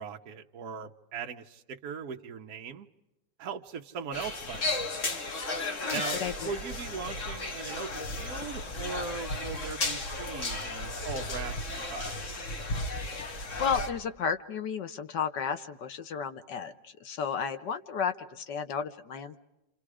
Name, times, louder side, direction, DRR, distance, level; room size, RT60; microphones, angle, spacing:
voice 1, 0.0-2.9 3.4-4.9 5.9-12.2, right 6 dB, 55° right, 3 dB, 1.3 m, -39 dB
sound 1, 4.1-13.9, left 2 dB, 45° left, 1.9 m, -34 dB
voice 2, 5.8-6.5 13.1-19.4, left 7 dB, 70° left, 9 dB, 1.7 m, -33 dB
29.5 x 27.5 x 4.9 m, 0.94 s
omnidirectional pair, 2.0 m